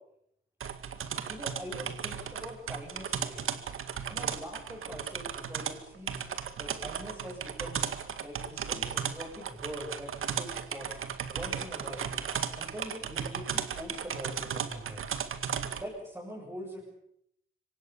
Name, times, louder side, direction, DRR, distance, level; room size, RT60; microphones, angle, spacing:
sound 1, 0.6-15.8, right 7 dB, 90° right, 2.0 m, -35 dB
voice 1, 1.3-3.5 4.1-6.2 6.6-7.8 8.2-10.9 11.3-12.1 12.6-15.1 15.8-16.9, equal, 15° right, -4 dB, 7.3 m, -43 dB
26.5 x 25.0 x 7.0 m, 0.74 s
wide cardioid pair, 155°, 21 cm